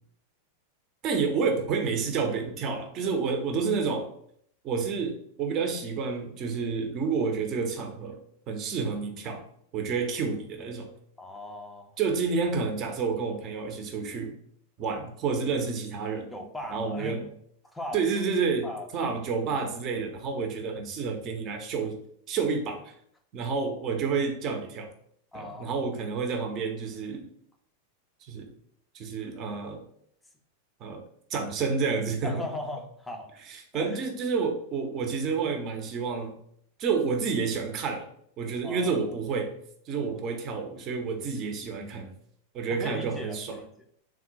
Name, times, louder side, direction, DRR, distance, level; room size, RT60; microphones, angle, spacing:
voice 1, 1.0-4.1 4.6-8.2 8.5-9.4 9.7-10.9 12.0-14.3 14.8-16.3 16.7-17.3 17.9-18.7 18.9-22.0 22.3-22.9 23.3-24.9 25.3-27.2 28.2-28.5 28.9-29.8 30.8-31.0 31.3-32.4 33.5-36.4 36.8-38.1 38.4-39.5 39.9-42.1 42.5-43.6, right 5 dB, 35° right, 4 dB, 0.6 m, -29 dB
voice 2, 11.2-11.9 16.3-17.2 17.7-18.0 18.6-18.9 25.3-25.8 32.2-33.3 33.7-34.0 38.6-39.0 42.7-43.8, left 1 dB, 5° left, 2 dB, 0.4 m, -38 dB
3.6 x 2.3 x 4.0 m, 0.67 s
figure-of-eight pair, 90°, 0 cm